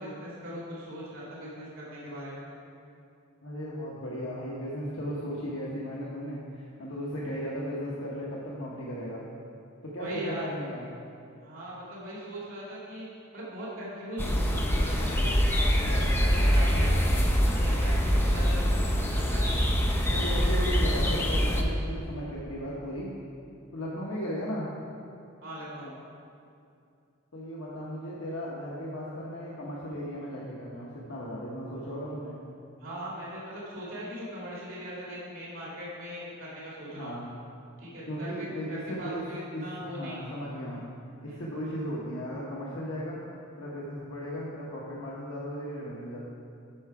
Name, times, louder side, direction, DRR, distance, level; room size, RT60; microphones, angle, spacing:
voice 1, 0.0-2.5 10.0-10.4 11.4-13.0 13.3-15.6 16.0-19.7 20.0-20.6 25.4-26.0 32.8-37.2 37.8-40.3 41.3-41.4, equal, 80° right, -7 dB, 2.2 m, -40 dB
voice 2, 3.4-9.2 9.8-10.8 15.6-16.1 16.7-17.0 20.2-23.1 23.7-24.7 27.3-32.4 37.0-37.2 38.1-39.2 39.5-40.8 41.2-43.2 43.6-46.2, equal, 75° left, -6 dB, 1.0 m, -36 dB
sound 1, 14.2-21.6, equal, 10° left, 0.6 m, -24 dB
8.7 x 5.7 x 4.7 m, 2.5 s
head